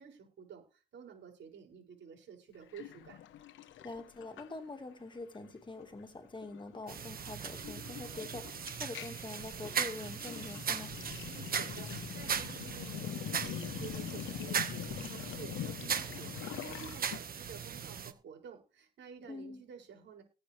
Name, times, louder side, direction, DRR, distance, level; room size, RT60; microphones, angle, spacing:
voice 1, 0.0-3.2 11.3-20.2, right 7 dB, 70° right, 6.9 m, -51 dB
Sink (filling or washing), 2.7-4.9 5.2-5.5 5.8-17.2, left 10 dB, 75° left, 1.2 m, -44 dB
voice 2, 3.8-11.0 19.3-19.6, left 2 dB, 25° left, 2.0 m, -45 dB
sound 1, 6.9-18.1, right 7 dB, 50° right, 1.6 m, -39 dB
19.5 x 8.1 x 3.4 m
cardioid pair, 90°, 20 cm